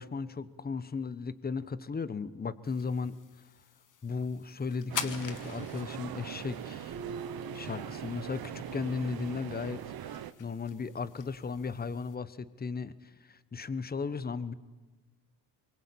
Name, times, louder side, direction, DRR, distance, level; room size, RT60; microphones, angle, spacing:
voice 1, 0.0-3.1 4.0-6.9 7.5-12.9 13.3-14.5, left 5 dB, 20° left, 15 dB, 1.1 m, -36 dB
sound 1, 2.6-12.2, left 7 dB, 40° left, 1.5 m, -46 dB
sound 2, 4.9-10.3, right 10 dB, 50° right, 1.2 m, -41 dB
sound 3, 6.9-8.6, right 4 dB, 85° right, 3.5 m, -44 dB
24.0 x 22.0 x 8.7 m, 1.2 s
cardioid pair, 95°, 47 cm